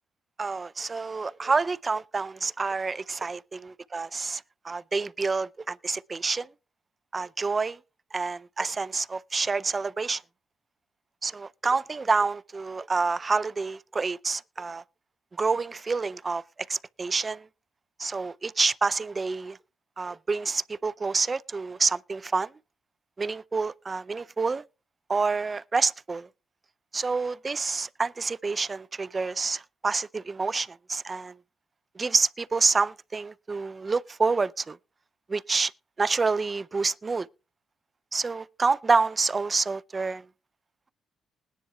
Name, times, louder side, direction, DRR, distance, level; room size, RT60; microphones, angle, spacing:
voice 1, 0.4-6.5 7.1-7.8 8.1-10.2 11.2-14.8 15.4-16.4 16.7-17.5 18.0-19.6 20.0-22.5 23.2-24.6 25.1-26.3 26.9-31.3 32.0-34.8 35.3-35.7 36.0-37.3 38.1-40.3, right 4 dB, 30° right, 0.4 m, -28 dB
20.5 x 10.0 x 2.3 m
cardioid pair, 90°, 0 cm